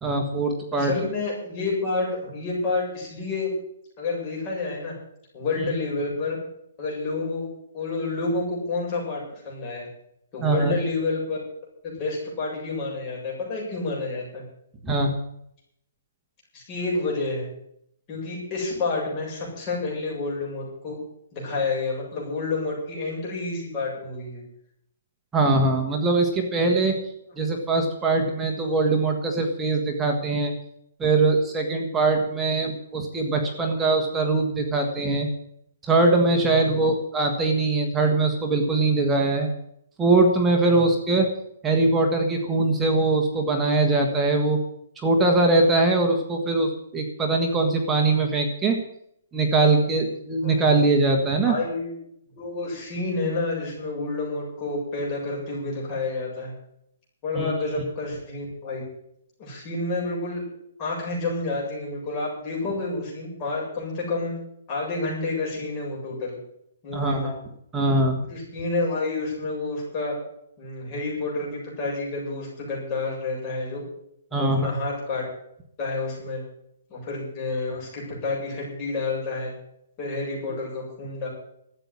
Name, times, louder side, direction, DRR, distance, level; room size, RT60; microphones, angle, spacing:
voice 1, 0.0-0.9 10.4-10.8 14.8-15.1 25.3-27.0 27.4-30.5 31.0-35.3 35.8-39.5 40.0-41.3 41.6-44.6 45.0-48.8 49.3-51.5 57.4-57.5 66.9-67.4 67.7-68.2 74.3-74.7, right 3 dB, 10° right, 1 dB, 1.6 m, -22 dB
voice 2, 0.7-3.5 4.0-4.9 5.3-6.4 6.8-7.5 7.7-9.9 10.3-11.4 11.8-14.4 16.5-17.5 18.1-21.0 21.3-24.4 27.3-27.4 36.5-36.8 40.6-40.9 50.4-50.7 51.4-52.0 52.3-56.5 57.2-58.8 59.4-60.4 60.8-64.3 64.7-66.4 66.8-67.3 68.3-70.2 70.6-73.8 74.3-75.2 75.8-76.4 76.9-79.5 80.0-81.3, left 3 dB, 25° left, -3 dB, 7.5 m, -29 dB
14.0 x 9.1 x 9.7 m, 0.73 s
hypercardioid pair, 165°, 0 cm